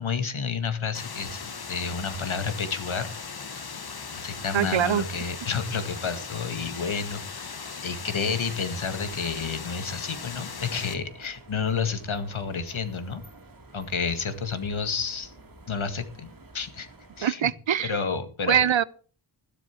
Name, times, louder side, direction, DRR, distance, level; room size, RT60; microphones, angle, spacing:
voice 1, 0.0-3.1 4.2-13.2 13.7-15.3 15.7-16.9 17.2-17.5 17.8-18.6, left 5 dB, 75° left, 2.0 m, -30 dB
sound 1, 0.9-10.9, left 5 dB, 50° left, 1.4 m, -38 dB
voice 2, 4.5-5.0 17.2-17.9 18.5-18.8, right 9 dB, 65° right, 0.7 m, -23 dB
sound 2, 8.7-17.3, right 2 dB, 45° right, 2.4 m, -50 dB
13.5 x 12.0 x 4.5 m
wide cardioid pair, 100°, 48 cm